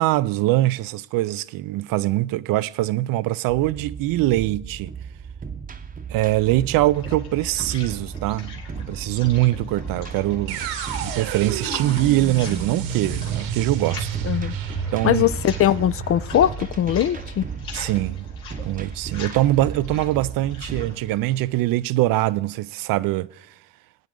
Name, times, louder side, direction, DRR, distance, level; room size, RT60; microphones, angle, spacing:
voice 1, 0.0-4.9 6.1-10.6 11.0-14.1 14.9-15.3 17.7-18.3 18.6-23.5, right 16 dB, 65° right, 0.5 m, -23 dB
sound 1, 3.5-20.9, right 6 dB, 20° right, 0.8 m, -35 dB
sound 2, 6.4-22.4, left 4 dB, 75° left, 3.0 m, -41 dB
sound 3, 10.5-18.4, right 7 dB, 80° right, 1.5 m, -31 dB
voice 2, 14.2-14.6 15.0-17.5, left 11 dB, 40° left, 0.4 m, -21 dB
20.5 x 9.1 x 3.7 m
supercardioid pair, 65°, 38 cm